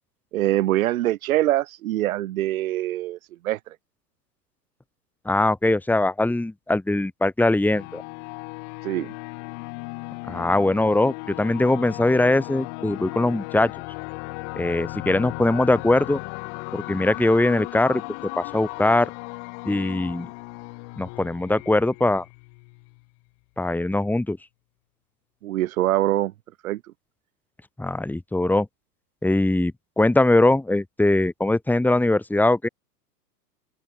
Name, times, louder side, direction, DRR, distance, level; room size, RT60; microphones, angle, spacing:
voice 1, 0.3-3.2 3.4-3.7 8.8-9.1 25.4-26.3 26.6-26.8, right 15 dB, 55° right, 6.9 m, -24 dB
voice 2, 5.3-8.0 10.3-13.7 14.6-16.2 16.7-18.0 18.4-19.1 19.6-20.3 21.0-22.3 23.6-24.4 27.8-28.7 29.2-32.7, left 2 dB, 5° left, 3.7 m, -21 dB
sound 1, 7.7-23.0, left 33 dB, 45° left, 6.1 m, -36 dB
open air
figure-of-eight pair, 110°, 49 cm